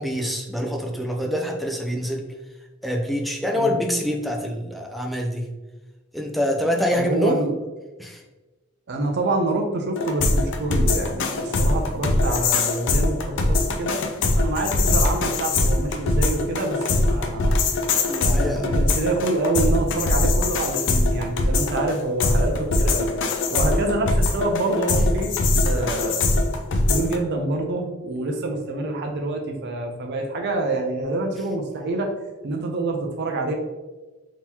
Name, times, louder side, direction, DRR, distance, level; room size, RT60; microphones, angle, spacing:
voice 1, 0.0-2.2 2.8-5.5 6.1-7.4 8.0-8.2 18.1-18.7 23.5-23.7, equal, ahead, 1 dB, 0.4 m, -25 dB
voice 2, 6.9-7.6 8.9-14.0 14.4-17.7 18.2-23.1 23.5-25.3 25.6-26.2 26.9-32.1 32.4-33.5, right 2 dB, 55° right, 3 dB, 0.5 m, -26 dB
sound 1, 10.0-27.2, left 2 dB, 65° left, 0.4 m, -22 dB
3.7 x 2.9 x 2.8 m, 1.2 s
head